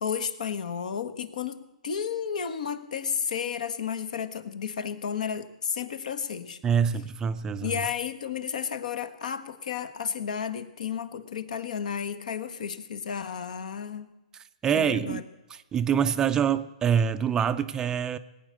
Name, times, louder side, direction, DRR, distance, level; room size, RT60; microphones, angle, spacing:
voice 1, 0.0-6.6 7.6-14.1 14.7-15.2, left 7 dB, 70° left, 13 dB, 1.3 m, -32 dB
voice 2, 6.6-7.7 14.6-15.2 15.7-18.2, right 8 dB, 15° right, 11 dB, 0.4 m, -25 dB
19.5 x 8.8 x 7.5 m, 0.99 s
hypercardioid pair, 145°, 4 cm